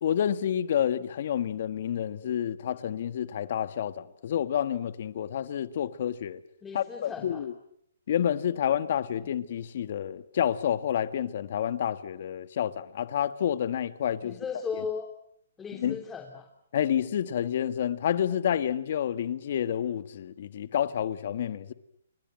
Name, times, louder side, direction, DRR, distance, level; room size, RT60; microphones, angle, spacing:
voice 1, 0.0-6.4 6.7-7.5 8.1-14.4 15.7-16.0 16.7-21.7, left 9 dB, 55° left, 1.7 m, -29 dB
voice 2, 6.6-7.4 14.2-15.1 15.6-16.5, left 6 dB, 15° left, 3.3 m, -36 dB
29.5 x 25.0 x 7.7 m
hypercardioid pair, 135°, 0 cm